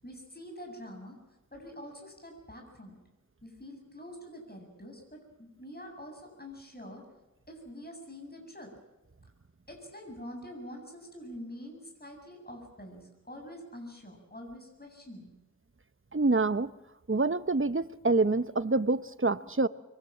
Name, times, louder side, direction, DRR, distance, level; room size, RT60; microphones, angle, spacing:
voice 1, 0.0-1.2 1.5-3.0 3.4-7.0 7.5-8.7 9.7-15.3, equal, 30° left, 3 dB, 7.9 m, -46 dB
voice 2, 16.1-16.7 17.1-19.7, right 3 dB, 45° right, 14 dB, 1.0 m, -26 dB
25.5 x 24.0 x 7.7 m, 1.0 s
wide cardioid pair, 50°, 30 cm